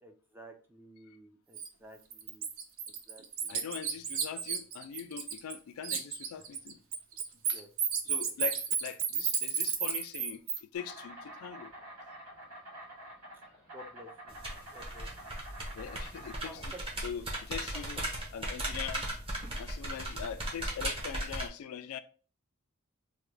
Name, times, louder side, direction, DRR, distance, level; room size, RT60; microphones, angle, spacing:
voice 1, 0.0-2.5 3.1-3.6 7.3-7.7 8.2-8.3 13.7-14.3 14.7-15.1 16.4-16.8 17.6-18.0, right 1 dB, 10° right, 0.4 m, -52 dB
Bird, 1.6-1.7 2.1-5.6 5.8-10.6, right 7 dB, 65° right, 0.5 m, -32 dB
voice 2, 3.5-6.8 7.5-7.6 8.1-11.7 15.7-16.7 17.0-18.0 18.3-19.1 19.6-22.0, left 8 dB, 80° left, 0.3 m, -42 dB
Insect, 10.7-20.7, right 1 dB, 90° right, 1.7 m, -49 dB
sound 1, 14.3-21.5, right 1 dB, 25° right, 0.7 m, -37 dB
3.5 x 2.2 x 3.2 m
head